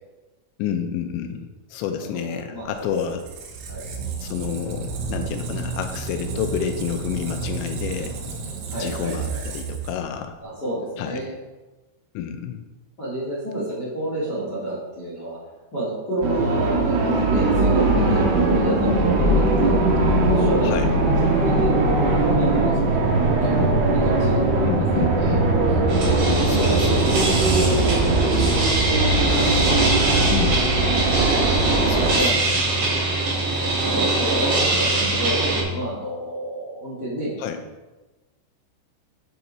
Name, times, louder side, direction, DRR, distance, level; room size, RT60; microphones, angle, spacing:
voice 1, 0.6-3.2 4.2-8.4 8.8-10.4 11.0-11.3 12.1-12.6 17.9-18.3 20.6-20.9 24.7-25.5 26.5-27.5 30.3-30.6 31.9-32.3 32.8-33.0 37.4-37.6, left 8 dB, 80° left, 6 dB, 2.8 m, -29 dB
voice 2, 1.9-3.0 3.7-3.8 8.7-9.4 10.4-11.3 13.0-15.4 15.7-19.8 20.2-25.4 26.4-30.7 32.2-33.1 33.8-37.4, right 1 dB, 40° left, -7 dB, 1.5 m, -31 dB
Squeak, 2.7-10.4, right 5 dB, 85° right, 3.7 m, -32 dB
sound 1, 16.2-32.2, right 2 dB, 70° right, 2.8 m, -20 dB
sound 2, 25.9-35.6, right 2 dB, 50° right, 3.3 m, -22 dB
10.5 x 5.7 x 4.0 m, 1.2 s
omnidirectional pair, 5.5 m